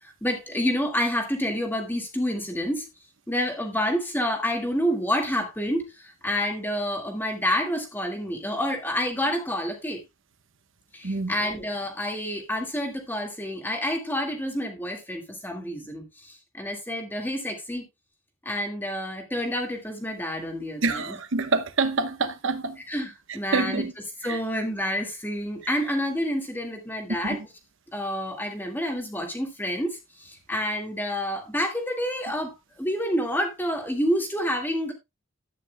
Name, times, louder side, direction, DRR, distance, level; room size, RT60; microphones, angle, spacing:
voice 1, 0.0-2.9 3.3-10.0 10.9-17.8 18.4-21.2 22.9-23.9 24.2-27.4 27.9-34.9, equal, 10° left, 1.9 m, -28 dB
voice 2, 20.8-22.8 23.5-23.9 24.3-24.4, right 3 dB, 60° right, 1.0 m, -26 dB
12.5 x 9.3 x 2.2 m
head